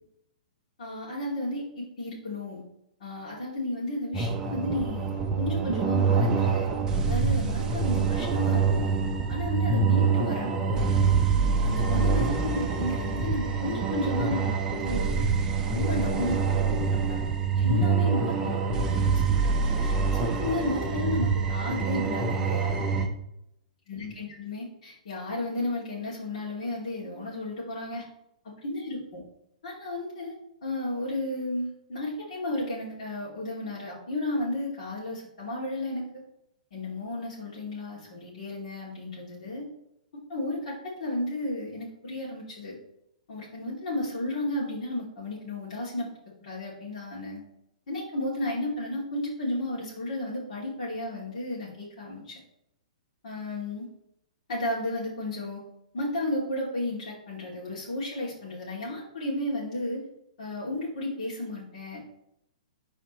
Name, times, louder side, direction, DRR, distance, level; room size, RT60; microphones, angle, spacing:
voice 1, 0.8-2.6 3.0-6.7 7.0-8.9 9.3-10.9 11.6-15.3 15.7-17.2 17.5-22.8 23.9-28.0 28.4-29.2 29.6-36.2 36.7-39.7 40.3-42.8 43.3-46.1 46.4-47.4 47.9-52.4 53.2-53.9 54.5-55.6 55.9-60.0 60.4-62.0, left 1 dB, 60° left, -7 dB, 2.7 m, -33 dB
sound 1, 4.1-23.1, right 5 dB, 15° right, 0.6 m, -25 dB
12.5 x 4.2 x 3.1 m, 0.81 s
hypercardioid pair, 165°, 4 cm